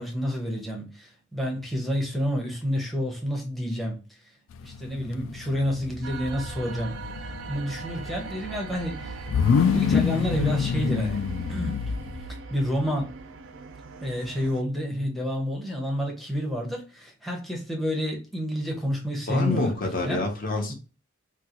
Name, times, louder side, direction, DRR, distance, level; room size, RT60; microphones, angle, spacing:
voice 1, 0.0-4.2 4.6-7.0 7.5-9.2 9.6-11.2 11.5-11.7 12.5-13.1 14.0-19.7 20.0-20.3 20.7-20.8, equal, ahead, 0.6 m, -29 dB
sound 1, 4.5-12.3, left 6 dB, 80° left, 0.3 m, -27 dB
sound 2, 6.0-14.6, right 4 dB, 70° right, 0.4 m, -40 dB
voice 2, 19.3-20.7, left 2 dB, 45° left, 0.7 m, -27 dB
3.8 x 2.3 x 2.8 m
head